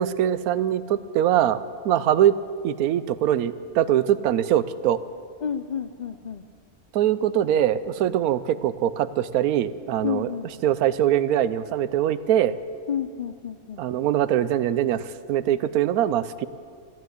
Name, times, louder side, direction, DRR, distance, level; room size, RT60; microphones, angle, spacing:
voice 1, 0.0-1.6 1.8-2.3 2.6-5.0 6.9-10.3 10.6-12.6 13.8-16.5, right 11 dB, 90° right, 15 dB, 1.1 m, -22 dB
voice 2, 5.4-6.4 10.0-10.5 12.9-13.8, left 8 dB, 70° left, 8 dB, 0.4 m, -30 dB
14.0 x 12.0 x 7.9 m, 2.1 s
omnidirectional pair, 1.5 m